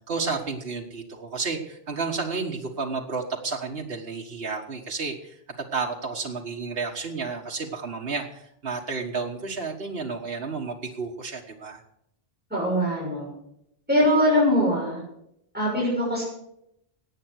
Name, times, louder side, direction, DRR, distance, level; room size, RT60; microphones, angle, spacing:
voice 1, 0.1-5.4 5.7-11.8, right 4 dB, 75° right, 0 dB, 1.8 m, -31 dB
voice 2, 12.5-13.3 13.9-15.0 15.5-16.2, equal, 10° right, -6 dB, 6.6 m, -22 dB
18.0 x 9.2 x 6.4 m, 0.76 s
omnidirectional pair, 1.0 m